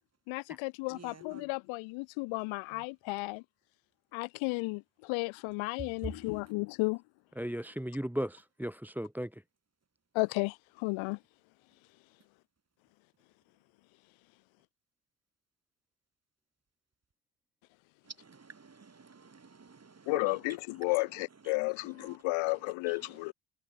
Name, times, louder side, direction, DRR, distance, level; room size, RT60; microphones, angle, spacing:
voice 1, 0.3-3.4 4.1-7.0 10.1-11.2 20.1-23.3, left 27 dB, 70° left, 2.5 m, -33 dB
voice 2, 0.9-1.4 6.0-6.1 18.1-20.4 20.8-20.9 22.0-22.2 22.9-23.1, right 4 dB, 30° right, 7.1 m, -48 dB
voice 3, 7.4-9.4, equal, 5° right, 2.4 m, -36 dB
hypercardioid pair, 50°, 48 cm